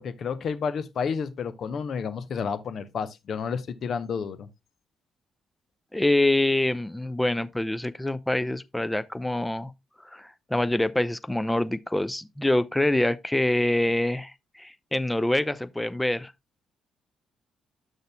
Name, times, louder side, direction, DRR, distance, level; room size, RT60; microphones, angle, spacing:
voice 1, 0.0-4.5, left 6 dB, 55° left, 0.7 m, -30 dB
voice 2, 5.9-9.7 10.1-14.3 14.6-16.3, left 1 dB, 10° left, 0.6 m, -25 dB
10.5 x 6.5 x 2.2 m
figure-of-eight pair, 45°, 0 cm